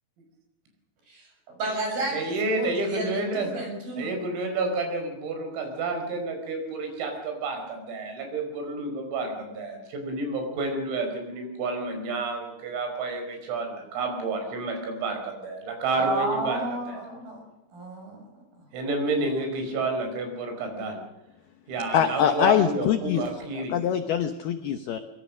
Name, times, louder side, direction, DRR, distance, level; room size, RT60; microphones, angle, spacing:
voice 1, 1.6-4.1 16.0-17.4 17.7-18.2, right 2 dB, 45° right, 2 dB, 8.6 m, -31 dB
voice 2, 2.1-3.5 4.0-17.1 18.7-21.0 21.7-23.7, right 2 dB, 85° right, 4 dB, 7.7 m, -30 dB
voice 3, 21.9-23.2 23.5-25.0, left 9 dB, 75° left, 8 dB, 2.3 m, -24 dB
23.5 x 22.0 x 6.5 m, 0.92 s
omnidirectional pair, 5.9 m